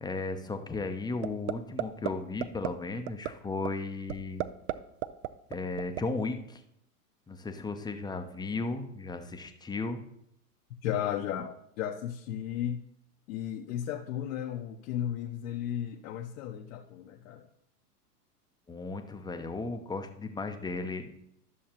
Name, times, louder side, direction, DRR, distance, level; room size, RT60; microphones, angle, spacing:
voice 1, 0.0-4.5 5.5-6.6 7.3-10.0 18.7-21.1, left 3 dB, 10° left, 6 dB, 0.6 m, -35 dB
sound 1, 1.2-1.5 1.8-2.1 2.4-2.7 3.1-3.3 3.6-3.7 4.1-4.7 5.0-6.0, right 15 dB, 45° right, 0.5 m, -31 dB
voice 2, 10.8-12.8 13.3-17.5, left 10 dB, 60° left, 1 dB, 1.0 m, -34 dB
12.5 x 6.4 x 2.9 m, 0.75 s
hypercardioid pair, 105°, 48 cm